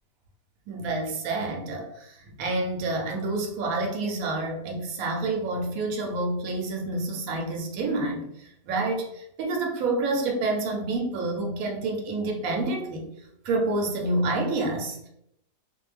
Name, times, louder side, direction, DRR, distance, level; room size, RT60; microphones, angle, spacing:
voice 1, 0.7-13.1 13.4-15.1, right 2 dB, 65° right, 0 dB, 0.9 m, -28 dB
2.6 x 2.2 x 3.2 m, 0.77 s
omnidirectional pair, 1.8 m